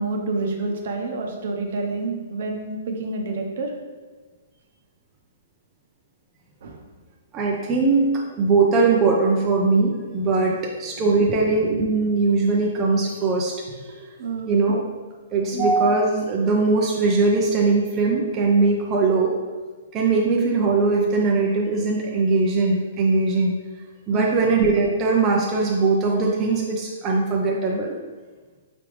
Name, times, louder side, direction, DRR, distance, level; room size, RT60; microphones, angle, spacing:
voice 1, 0.0-3.7 6.6-6.8 13.9-14.5 24.1-24.4, right 3 dB, 55° right, 3 dB, 0.7 m, -28 dB
voice 2, 7.3-13.5 13.8-13.9 14.5-14.9 15.3-19.3 19.9-23.5 24.1-27.9, right 3 dB, 20° right, -2 dB, 0.4 m, -20 dB
4.8 x 3.4 x 3.2 m, 1.3 s
hypercardioid pair, 165°, 0 cm